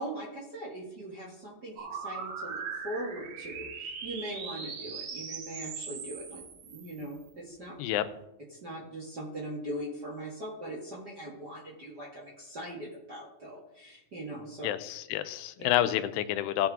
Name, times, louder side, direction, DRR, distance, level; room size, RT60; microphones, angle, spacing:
voice 1, 0.0-7.8 8.6-14.7 15.6-15.7, right 1 dB, 40° right, -3 dB, 1.5 m, -40 dB
sound 1, 1.8-7.3, right 5 dB, 75° right, 3.6 m, -40 dB
voice 2, 14.6-16.7, left 12 dB, 90° left, 12 dB, 2.8 m, -29 dB
17.0 x 6.0 x 3.7 m, 0.87 s
omnidirectional pair, 4.7 m